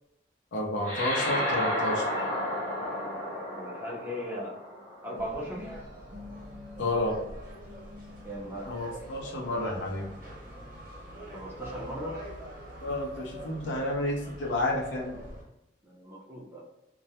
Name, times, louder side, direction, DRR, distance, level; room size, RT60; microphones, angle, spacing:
voice 1, 0.5-2.2 6.8-7.2 8.7-10.1 12.8-15.2, left 1 dB, 90° left, -1 dB, 0.6 m, -30 dB
sound 1, 0.8-5.6, left 1 dB, 45° left, 0.6 m, -32 dB
voice 2, 3.5-4.6 5.0-5.9 8.2-8.7 11.3-12.2 15.8-16.6, equal, 10° right, -5 dB, 0.5 m, -38 dB
sound 2, 5.1-15.4, equal, 50° right, 0.9 m, -44 dB
2.3 x 2.0 x 2.7 m, 0.90 s
head